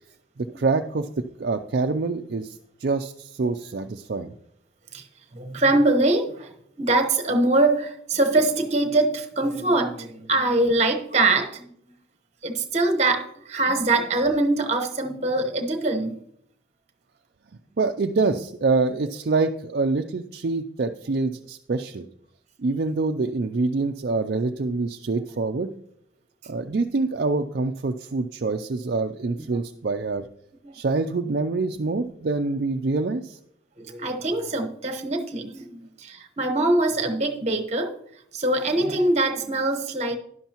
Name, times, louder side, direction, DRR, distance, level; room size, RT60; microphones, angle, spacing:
voice 1, 0.4-1.1 1.4-4.3 17.8-22.1 22.6-25.7 26.5-30.3 30.7-33.4, right 3 dB, 55° right, 6 dB, 0.4 m, -25 dB
voice 2, 5.3-6.5 6.8-11.7 12.4-16.2 29.4-29.5 30.6-30.8 32.5-32.6 33.8-37.9 38.3-40.1, right 2 dB, 35° right, 6 dB, 1.1 m, -23 dB
11.0 x 11.0 x 3.0 m, 0.71 s
head